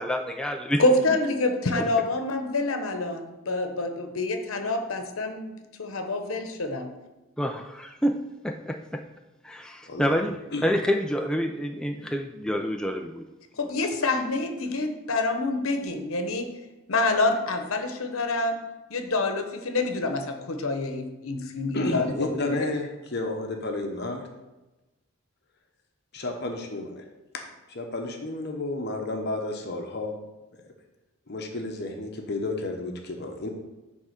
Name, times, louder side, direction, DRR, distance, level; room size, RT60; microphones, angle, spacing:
voice 1, 0.0-0.8 1.8-1.9 7.4-9.0 9.4-13.3, equal, 5° left, 4 dB, 0.4 m, -28 dB
voice 2, 0.8-5.5 5.8-6.9 13.6-16.5 16.9-18.6 18.9-22.6, left 2 dB, 75° left, 6 dB, 1.0 m, -27 dB
voice 3, 9.9-10.2 10.5-10.7 21.7-24.2 26.1-27.0 27.7-30.2 31.3-33.5, left 2 dB, 50° left, 3 dB, 1.0 m, -31 dB
9.6 x 3.6 x 6.5 m, 1.1 s
head